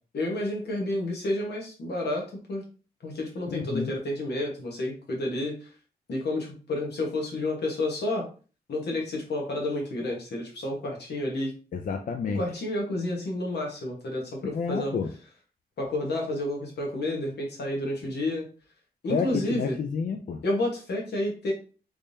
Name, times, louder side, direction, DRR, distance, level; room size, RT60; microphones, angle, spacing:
voice 1, 0.1-2.6 3.0-5.7 6.1-8.3 8.7-11.5 12.3-14.9 15.8-18.5 19.0-19.8 20.4-21.5, left 1 dB, 85° left, 0 dB, 1.2 m, -30 dB
voice 2, 3.5-4.0 11.7-12.4 14.4-15.1 19.1-20.4, left 6 dB, 55° left, 5 dB, 0.4 m, -30 dB
3.5 x 3.2 x 2.6 m, 0.37 s
wide cardioid pair, 140°, 17 cm